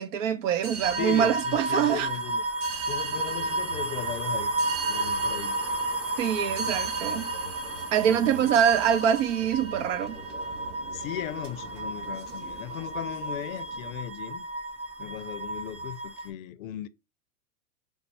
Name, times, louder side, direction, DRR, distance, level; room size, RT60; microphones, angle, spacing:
voice 1, 0.0-2.1 6.2-7.3 7.9-10.2, right 9 dB, 50° right, 0.6 m, -24 dB
sound 1, 0.5-14.0, right 5 dB, 35° right, 2.0 m, -41 dB
sound 2, 0.8-16.3, right 2 dB, ahead, 0.7 m, -32 dB
voice 2, 0.9-2.5 2.9-4.5 4.9-5.6 8.1-8.6 10.9-14.5 15.0-16.9, left 12 dB, 55° left, 0.5 m, -37 dB
5.1 x 2.1 x 4.3 m
hypercardioid pair, 115°, 48 cm